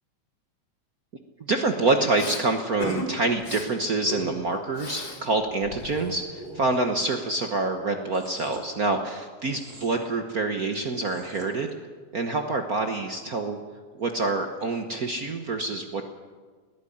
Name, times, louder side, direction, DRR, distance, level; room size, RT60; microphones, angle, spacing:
voice 1, 1.5-11.7 12.1-13.6 14.0-16.0, right 3 dB, 65° right, 5 dB, 0.8 m, -26 dB
Respiratory sounds, 2.2-2.4 2.8-3.1 3.4-3.7 4.1-5.2 5.5-6.9, left 1 dB, 55° left, 4.3 m, -36 dB
sound 1, 8.1-8.7 9.5-10.0 10.9-11.5, right 2 dB, 25° right, 3.2 m, -45 dB
20.5 x 14.5 x 10.0 m, 1.5 s
omnidirectional pair, 3.4 m